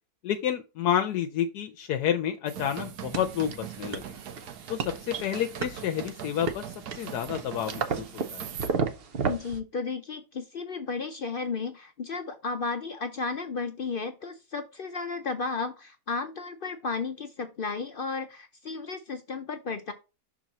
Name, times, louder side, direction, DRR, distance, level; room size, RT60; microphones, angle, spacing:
voice 1, 0.2-4.1 4.7-8.5, left 10 dB, 80° left, 6 dB, 1.2 m, -30 dB
sound 1, 2.5-8.7, right 9 dB, 75° right, 1.3 m, -41 dB
sound 2, 3.1-9.6, right 5 dB, 45° right, 0.8 m, -34 dB
voice 2, 9.3-19.9, left 4 dB, 65° left, 9 dB, 0.5 m, -33 dB
6.1 x 4.5 x 4.0 m, 0.29 s
omnidirectional pair, 1.7 m